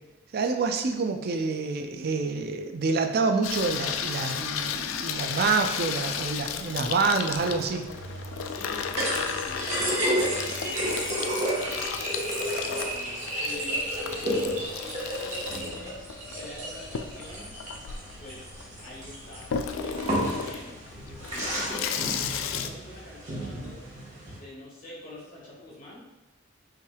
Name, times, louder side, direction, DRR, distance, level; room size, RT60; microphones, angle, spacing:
voice 1, 0.3-7.8, right 4 dB, 50° right, 5 dB, 0.4 m, -27 dB
Water tap faucet / Sink (filling or washing), 3.4-22.7, left 7 dB, 85° left, 0.3 m, -34 dB
sound 1, 7.4-24.4, equal, 35° right, 1.2 m, -32 dB
voice 2, 8.4-11.8 12.6-15.9 16.3-17.5 18.2-18.5 18.8-20.7 21.2-23.8 24.3-26.0, left 1 dB, 40° left, -6 dB, 1.4 m, -46 dB
5.5 x 3.3 x 2.3 m, 1.0 s
head